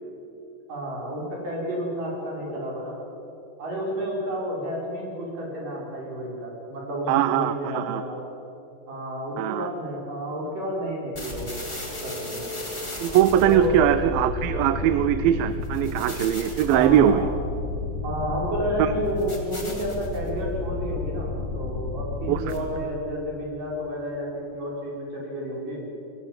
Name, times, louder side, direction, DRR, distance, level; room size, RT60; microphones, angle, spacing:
voice 1, 0.7-3.0 3.6-8.2 8.9-11.5 12.0-12.4 13.5-13.7 16.7-17.2 18.0-25.9, equal, 65° right, -3 dB, 7.4 m, -31 dB
voice 2, 7.1-8.0 9.4-9.7 13.0-17.3 18.8-18.9 22.3-22.4, right 10 dB, 85° right, 12 dB, 2.4 m, -21 dB
sound 1, 11.1-22.9, left 3 dB, 10° left, 3.2 m, -32 dB
26.0 x 21.0 x 7.6 m, 3.0 s
omnidirectional pair, 4.1 m